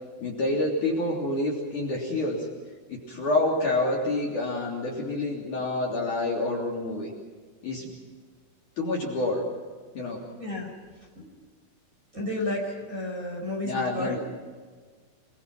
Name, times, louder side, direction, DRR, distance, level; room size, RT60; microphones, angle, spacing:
voice 1, 0.2-2.5 2.9-7.1 7.6-7.9 8.8-9.5 9.9-10.2 13.6-14.2, left 2 dB, 45° left, -2 dB, 4.2 m, -28 dB
voice 2, 12.1-14.2, left 1 dB, 15° right, -1 dB, 5.1 m, -31 dB
28.0 x 21.5 x 6.0 m, 1.5 s
omnidirectional pair, 5.4 m